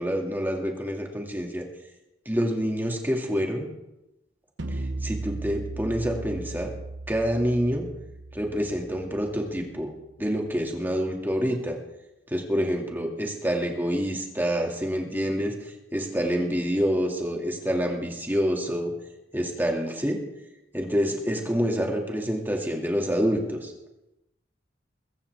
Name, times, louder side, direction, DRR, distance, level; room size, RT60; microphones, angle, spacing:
voice 1, 0.0-1.6 2.3-3.7 4.7-6.7 7.1-7.8 8.3-9.9 10.2-11.8 12.3-15.5 15.9-18.9 19.3-20.2 20.7-23.7, equal, 10° right, 1 dB, 2.4 m, -27 dB
sound 1, 4.6-9.9, right 2 dB, 70° right, 1.1 m, -37 dB
22.0 x 15.0 x 3.6 m, 0.95 s
head